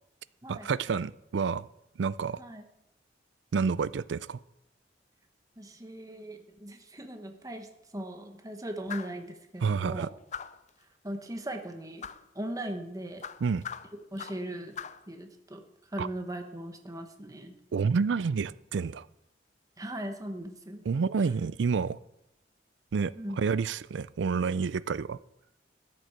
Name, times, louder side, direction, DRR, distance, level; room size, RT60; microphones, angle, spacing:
voice 1, 0.5-1.7 2.0-2.4 3.5-4.4 9.6-10.1 13.4-13.6 16.0-16.1 17.7-19.1 20.9-22.0 22.9-25.2, right 5 dB, 75° right, 0.4 m, -29 dB
voice 2, 5.6-7.7 7.9-10.1 11.0-12.1 12.3-13.2 14.1-14.8 15.1-15.6 15.9-17.5 19.8-20.8 23.2-23.4, right 1 dB, 20° right, 1.0 m, -39 dB
sound 1, 8.9-9.2 10.3-10.7 12.0-12.3 13.2-14.5 14.8-15.1, left 7 dB, 40° left, 0.4 m, -41 dB
13.5 x 7.7 x 6.6 m
head